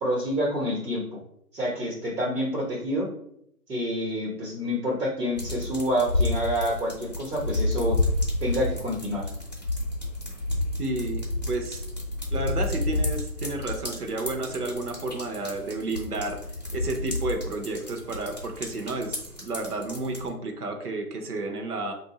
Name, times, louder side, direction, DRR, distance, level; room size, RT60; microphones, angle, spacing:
voice 1, 0.0-1.2 1.5-3.1 3.7-8.0 8.4-9.3, equal, 90° right, -3 dB, 1.4 m, -28 dB
sound 1, 5.4-20.3, left 2 dB, 30° left, 0.5 m, -30 dB
voice 2, 10.8-11.8 12.3-16.4 16.7-19.2 19.5-21.9, right 2 dB, 70° right, 4 dB, 0.9 m, -31 dB
2.8 x 2.7 x 4.0 m, 0.74 s
hypercardioid pair, 170°, 46 cm